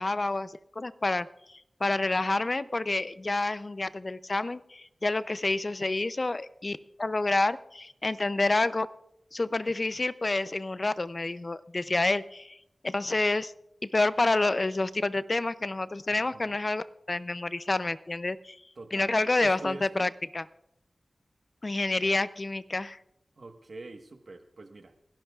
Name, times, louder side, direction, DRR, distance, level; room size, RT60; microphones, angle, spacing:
voice 1, 0.0-8.9 9.3-12.6 12.8-13.5 13.8-18.6 18.9-20.4 21.6-23.0, left 2 dB, 45° left, 15 dB, 0.5 m, -28 dB
voice 2, 16.1-16.6 18.8-19.1 19.4-20.1 23.4-25.0, right 3 dB, 70° right, 7 dB, 1.2 m, -45 dB
29.5 x 12.0 x 2.4 m, 0.80 s
wide cardioid pair, 55°, 0 cm